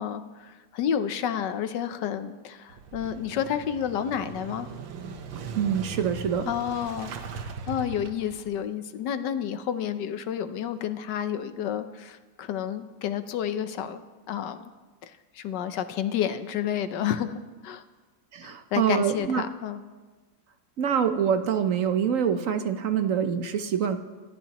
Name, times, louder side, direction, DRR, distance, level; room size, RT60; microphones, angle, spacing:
voice 1, 0.0-4.7 6.5-14.0 14.3-14.7 15.0-17.3 17.6-17.8 18.4-19.8, left 9 dB, 70° left, 10 dB, 1.3 m, -30 dB
Motorcycle / Engine starting, 2.7-8.5, right 5 dB, 85° right, 1.7 m, -39 dB
voice 2, 5.6-6.5 18.3-19.4 20.8-24.0, right 8 dB, 55° right, 8 dB, 1.0 m, -25 dB
28.0 x 14.0 x 3.0 m, 1.3 s
omnidirectional pair, 2.0 m